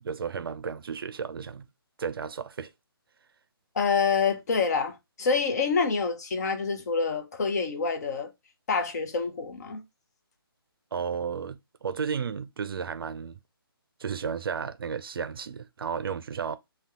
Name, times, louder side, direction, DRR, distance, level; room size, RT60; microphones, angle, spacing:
voice 1, 0.0-1.7 2.0-2.7 10.9-13.4 14.0-16.6, right 6 dB, 65° right, 0.4 m, -33 dB
voice 2, 3.8-8.3 8.7-9.8, left 5 dB, 45° left, 0.6 m, -27 dB
2.7 x 2.2 x 3.4 m
hypercardioid pair, 155°, 13 cm